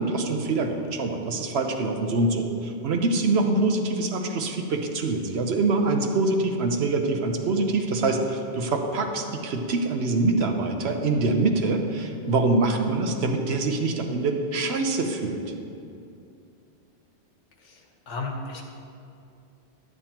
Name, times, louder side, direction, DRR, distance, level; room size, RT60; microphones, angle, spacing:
voice 1, 0.0-15.4, right 3 dB, 65° right, 4 dB, 1.0 m, -25 dB
voice 2, 18.1-18.6, left 3 dB, 80° left, 1 dB, 1.4 m, -33 dB
10.5 x 9.5 x 2.9 m, 2.6 s
omnidirectional pair, 1.2 m